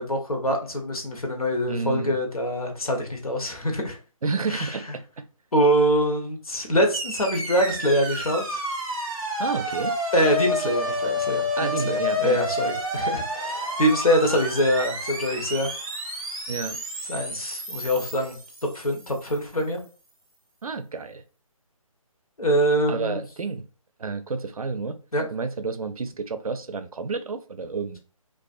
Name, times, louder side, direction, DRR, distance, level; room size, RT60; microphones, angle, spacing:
voice 1, 0.0-4.0 4.5-4.7 5.5-8.6 10.1-11.4 11.8-15.7 17.1-18.4 18.7-19.8 22.4-23.2 25.1-25.2, equal, 85° left, 0.8 m, -24 dB
voice 2, 1.7-2.2 4.2-5.2 9.4-10.0 11.5-12.4 16.5-16.8 20.6-21.2 22.9-23.7 24.0-25.0 25.3-28.0, right 4 dB, 85° right, 0.4 m, -30 dB
sound 1, 6.9-19.2, left 1 dB, 10° right, 0.4 m, -30 dB
2.4 x 2.3 x 2.4 m
figure-of-eight pair, 150°, 18 cm